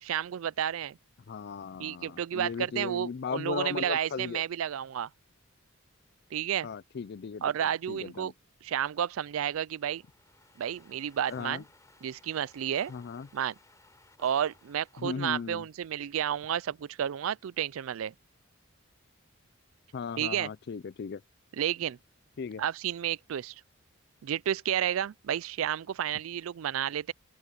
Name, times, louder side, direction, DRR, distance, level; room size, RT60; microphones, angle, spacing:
voice 1, 0.0-1.0 1.8-5.1 6.3-6.7 7.4-8.3 8.6-10.0 10.6-11.6 12.0-12.9 13.3-13.6 14.2-18.1 20.2-20.5 21.6-22.0 22.6-23.5 24.2-27.1, right 9 dB, 75° right, 0.4 m, -31 dB
voice 2, 1.3-4.4 6.6-7.4 7.9-8.3 11.3-11.6 12.9-13.3 15.0-15.7 19.9-21.2 22.4-22.6, left 5 dB, 50° left, 0.4 m, -37 dB
sound 1, 9.8-15.5, left 2 dB, 15° left, 4.8 m, -60 dB
open air
head